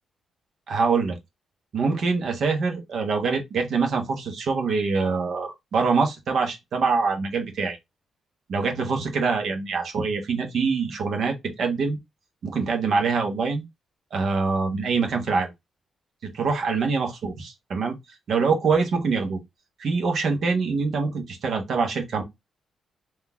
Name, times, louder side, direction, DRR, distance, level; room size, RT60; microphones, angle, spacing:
voice 1, 0.7-1.2 1.7-7.8 8.5-12.0 12.4-13.6 14.1-15.5 16.2-18.0 18.3-19.4 19.8-22.2, right 4 dB, 65° right, 1.5 m, -24 dB
4.0 x 3.2 x 3.6 m
cardioid pair, 105°, 0 cm